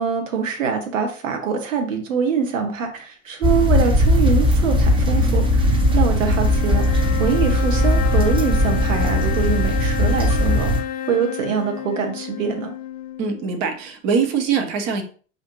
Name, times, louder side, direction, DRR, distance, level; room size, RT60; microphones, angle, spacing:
voice 1, 0.0-10.7 11.1-12.7, right 6 dB, 75° right, 4 dB, 0.9 m, -24 dB
sound 1, 3.4-10.8, left 1 dB, 15° right, 0.7 m, -18 dB
sound 2, 4.4-13.8, left 10 dB, 25° left, 0.4 m, -31 dB
voice 2, 13.2-15.0, right 6 dB, 40° right, 5 dB, 1.0 m, -22 dB
6.5 x 2.6 x 3.0 m, 0.41 s
figure-of-eight pair, 80°, 39 cm